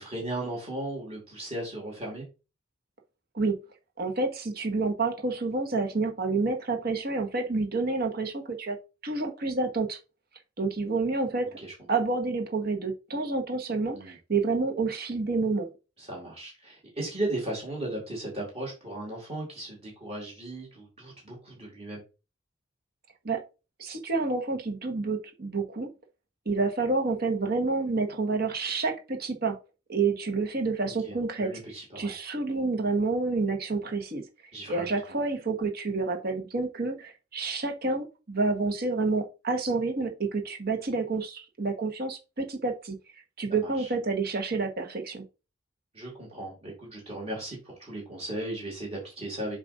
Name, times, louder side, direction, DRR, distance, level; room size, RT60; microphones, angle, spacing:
voice 1, 0.0-2.3 11.4-11.7 13.9-14.2 16.0-22.0 30.8-32.2 34.5-34.9 43.6-43.9 45.9-49.6, right 1 dB, 35° right, 1.9 m, -36 dB
voice 2, 4.0-8.8 9.0-10.0 10.6-11.6 11.9-15.7 23.2-23.4 23.8-25.9 26.5-29.6 29.9-31.5 32.0-43.0 43.4-45.2, right 3 dB, 55° right, 1.1 m, -29 dB
7.3 x 2.5 x 5.2 m
head